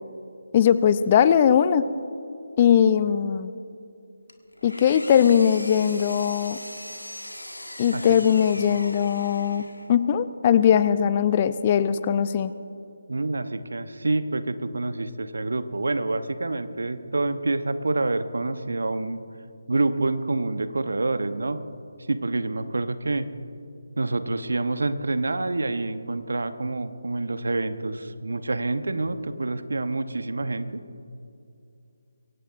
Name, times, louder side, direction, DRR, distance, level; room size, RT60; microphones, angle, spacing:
voice 1, 0.5-1.8 2.6-3.5 4.6-6.6 7.8-9.6 9.9-12.5, left 8 dB, 30° left, 14 dB, 0.5 m, -20 dB
Engine, 4.3-10.0, left 1 dB, 85° left, 1.8 m, -40 dB
voice 2, 13.1-19.2 19.7-21.6 22.1-23.3 24.0-30.8, right 2 dB, 65° right, 11 dB, 0.9 m, -27 dB
23.5 x 17.5 x 2.6 m, 2.6 s
figure-of-eight pair, 150°, 0 cm